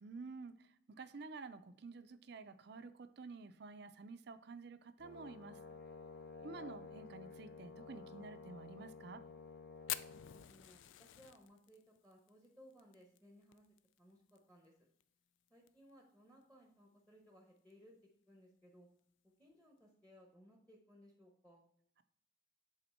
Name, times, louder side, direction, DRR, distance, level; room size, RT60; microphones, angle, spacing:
voice 1, 0.0-5.6 6.4-9.2, right 4 dB, 60° right, 11 dB, 0.5 m, -51 dB
Brass instrument, 5.0-10.5, left 4 dB, 55° left, 0.8 m, -53 dB
Fire, 9.9-14.4 14.6-14.7 15.0-15.1 15.5-15.9 16.4-16.5 17.6-17.7, left 13 dB, 80° left, 0.3 m, -46 dB
voice 2, 10.1-13.6 14.0-14.7 15.5-18.0 18.3-18.9 19.4-21.6, equal, 5° left, 0 dB, 1.0 m, -63 dB
7.9 x 3.8 x 4.4 m, 0.69 s
head